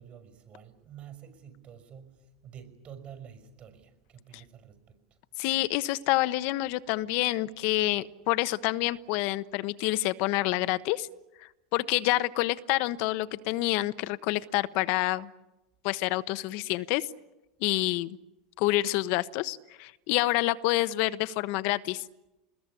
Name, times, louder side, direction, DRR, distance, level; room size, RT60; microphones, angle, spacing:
voice 1, 0.0-5.0, right 8 dB, 40° right, 5.8 m, -49 dB
voice 2, 5.4-11.1 11.4-15.3 15.8-17.1 17.6-18.2 18.6-22.0, left 18 dB, 60° left, 1.1 m, -28 dB
26.5 x 21.0 x 9.9 m
supercardioid pair, 110°, 3 cm